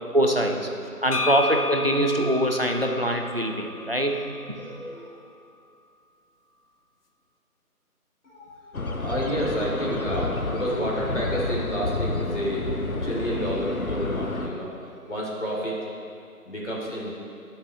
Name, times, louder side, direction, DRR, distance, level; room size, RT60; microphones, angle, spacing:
voice 1, 0.1-0.7 1.0-4.1, equal, 40° right, 2 dB, 0.7 m, -23 dB
sound 1, 1.1-4.9, left 2 dB, 90° left, 0.9 m, -33 dB
voice 2, 3.3-4.2 4.5-5.2 8.2-15.9 16.4-17.1, equal, 50° left, -5 dB, 2.9 m, -31 dB
sound 2, 8.7-14.5, left 2 dB, 65° left, 1.0 m, -30 dB
22.0 x 7.3 x 3.1 m, 2.5 s
figure-of-eight pair, 175°, 46 cm